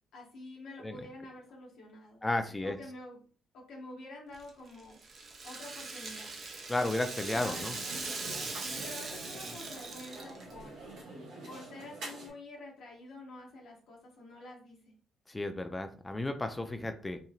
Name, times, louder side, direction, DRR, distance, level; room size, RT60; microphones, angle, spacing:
voice 1, 0.1-3.2 3.5-5.0 5.4-6.3 7.3-8.2 8.6-10.8 11.5-14.9, left 2 dB, 80° left, -2 dB, 0.8 m, -48 dB
voice 2, 2.2-2.8 6.7-7.7 15.3-17.2, left 2 dB, 15° left, 6 dB, 0.3 m, -33 dB
Rattle (instrument), 4.3-10.6, right 3 dB, 45° right, 0.7 m, -41 dB
sound 1, 7.2-12.3, right 2 dB, 85° right, 1.3 m, -46 dB
2.9 x 2.5 x 2.4 m, 0.42 s
cardioid pair, 90°, 0 cm